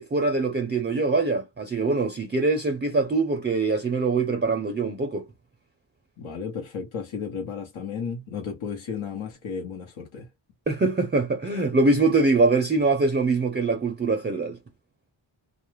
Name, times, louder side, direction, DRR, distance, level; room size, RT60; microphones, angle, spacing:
voice 1, 0.0-5.3 10.7-14.6, right 3 dB, 25° right, 0.4 m, -23 dB
voice 2, 6.2-10.3, left 6 dB, 80° left, 1.0 m, -33 dB
2.5 x 2.3 x 3.1 m
wide cardioid pair, 80°, 48 cm